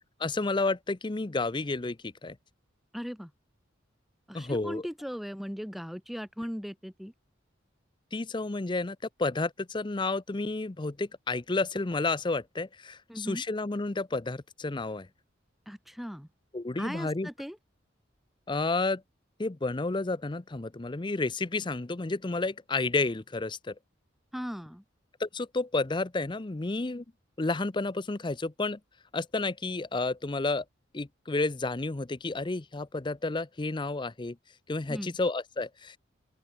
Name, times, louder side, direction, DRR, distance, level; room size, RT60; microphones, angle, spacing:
voice 1, 0.2-2.4 4.3-4.9 8.1-15.1 16.5-17.3 18.5-19.0 19.4-23.7 25.2-27.0 27.4-28.8 29.1-30.6 30.9-34.4 34.7-36.0, left 3 dB, 25° left, 0.6 m, -31 dB
voice 2, 2.9-3.3 4.3-7.1 13.1-13.4 15.7-16.3 16.8-17.6 24.3-24.8 34.9-35.2, equal, ahead, 3.1 m, -38 dB
open air
head